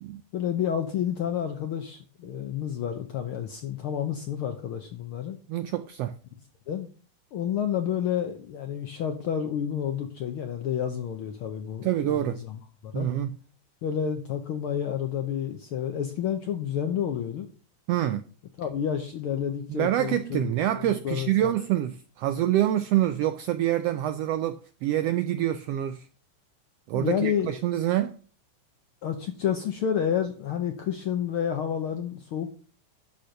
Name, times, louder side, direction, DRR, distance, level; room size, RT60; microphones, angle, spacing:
voice 1, 0.3-5.4 6.7-6.9 7.3-13.1 13.8-17.5 18.6-20.4 20.7-21.5 26.9-27.5 29.0-32.5, left 9 dB, 70° left, 1.3 m, -30 dB
voice 2, 5.5-6.1 11.8-12.4 12.9-13.4 17.9-18.2 19.7-26.1 26.9-28.1, right 13 dB, 85° right, 1.4 m, -26 dB
11.5 x 4.4 x 6.4 m
omnidirectional pair, 3.4 m